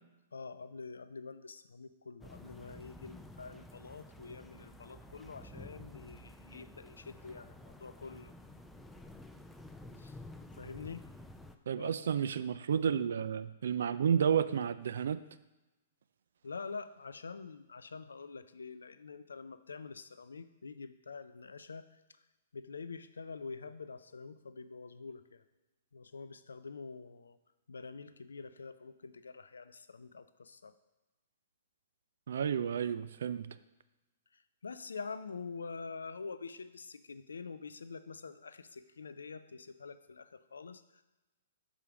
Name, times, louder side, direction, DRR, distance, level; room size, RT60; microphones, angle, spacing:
voice 1, 0.3-8.3 10.0-10.1 10.6-11.0 11.8-12.2 16.4-21.9 22.5-25.4 25.9-27.4 27.7-30.7 34.3-41.0, left 4 dB, 85° left, 13 dB, 0.4 m, -46 dB
sound 1, 2.2-11.6, left 1 dB, 5° left, 0.4 m, -51 dB
voice 2, 11.7-15.2 32.3-33.5, right 7 dB, 70° right, 14 dB, 0.3 m, -31 dB
5.5 x 4.9 x 4.9 m, 1.1 s
hypercardioid pair, 120°, 0 cm